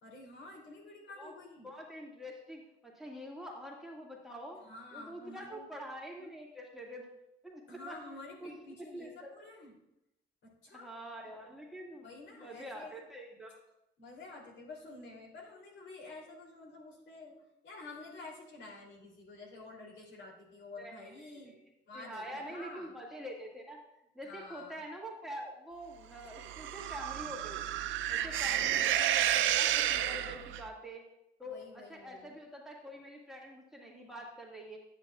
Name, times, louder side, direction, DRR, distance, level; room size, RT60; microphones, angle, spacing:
voice 1, 0.0-1.7 4.6-5.7 6.2-6.3 7.7-9.7 10.4-10.9 12.0-12.9 14.0-17.3 17.6-21.6 21.9-22.9 24.2-24.8 28.2-28.8 31.4-32.3, left 2 dB, 65° left, -1 dB, 2.9 m, -49 dB
voice 2, 1.6-4.6 4.9-7.1 7.4-8.0 8.4-8.5 8.9-9.4 10.7-12.1 12.4-13.6 20.8-21.6 21.9-23.8 24.1-27.8 28.1-31.1 31.4-34.8, equal, ahead, -2 dB, 1.9 m, -46 dB
sound 1, 26.3-30.6, right 12 dB, 75° right, 0.5 m, -31 dB
9.9 x 9.0 x 2.3 m, 0.87 s
cardioid pair, 90°, 20 cm